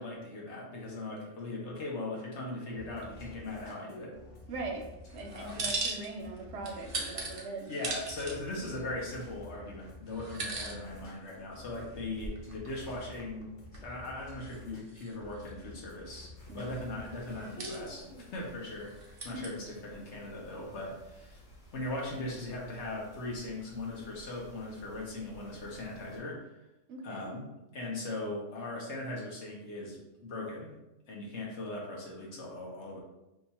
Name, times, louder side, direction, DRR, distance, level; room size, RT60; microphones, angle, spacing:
voice 1, 0.0-4.2 5.3-5.7 7.7-13.5 13.8-18.9 19.2-21.4 21.7-26.5 27.0-30.7 31.1-33.0, left 2 dB, 65° left, -3 dB, 1.1 m, -39 dB
sound 1, 2.7-17.5, left 3 dB, 45° left, 0.8 m, -51 dB
voice 2, 4.5-7.7 16.5-16.8 19.4-19.6 26.9-27.3, right 3 dB, 70° right, 1 dB, 0.8 m, -41 dB
sound 2, 5.1-6.4 6.6-8.4 9.1-9.2 10.1-10.8 11.1-11.2 11.9-13.4 13.7-13.8 14.5-14.6 14.9-15.5 17.3-18.0 18.8-19.5, right 3 dB, 50° right, 0.4 m, -38 dB
sound 3, 16.4-26.2, equal, 90° left, 1.2 m, -53 dB
2.9 x 2.3 x 4.0 m, 0.94 s
omnidirectional pair, 1.3 m